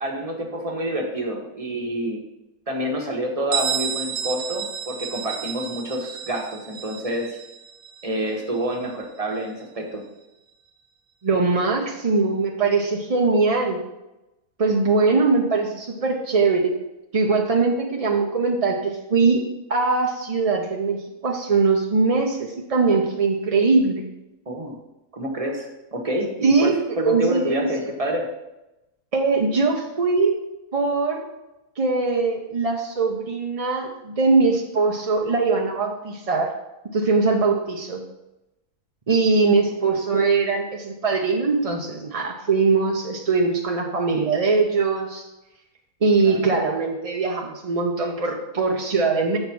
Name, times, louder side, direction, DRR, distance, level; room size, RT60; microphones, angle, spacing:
voice 1, 0.0-2.2 2.7-7.4 8.0-10.0 24.5-24.8 25.1-28.2 39.8-39.9 46.2-46.4, right 1 dB, 25° right, 1 dB, 1.1 m, -27 dB
Bell, 3.5-9.0, right 8 dB, 65° right, 1.2 m, -31 dB
voice 2, 11.2-13.8 14.6-16.7 17.1-19.4 19.7-24.0 26.4-26.8 27.0-27.7 29.1-30.4 30.7-31.3 31.8-36.5 36.9-38.0 39.1-45.2 46.0-49.4, right 4 dB, 45° right, 1 dB, 0.4 m, -21 dB
7.1 x 4.4 x 5.9 m, 0.96 s
omnidirectional pair, 1.6 m